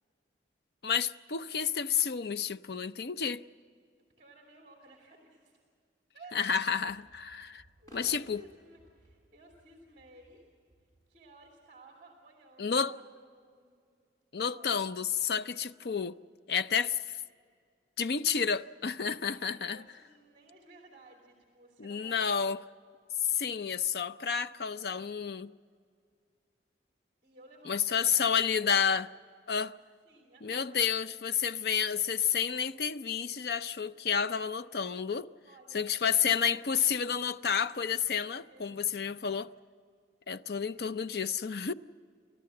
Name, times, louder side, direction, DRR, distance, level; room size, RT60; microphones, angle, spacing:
voice 1, 0.8-3.4 6.4-7.6 7.9-8.4 12.6-12.9 14.3-16.2 16.5-17.2 18.0-19.8 21.8-22.6 23.3-25.5 27.7-29.1 29.5-29.7 30.4-35.3 35.7-39.5 40.3-41.7, left 7 dB, 60° left, 0.5 m, -30 dB
voice 2, 4.2-5.6 6.1-6.4 7.8-10.5 10.8-13.7 14.4-14.8 19.0-22.5 27.2-28.4 30.0-30.8 35.4-37.0 38.5-38.9 40.7-41.0, right 2 dB, 40° right, 2.8 m, -57 dB
sound 1, 6.7-11.6, left 1 dB, 20° left, 6.4 m, -58 dB
30.0 x 13.5 x 7.7 m
head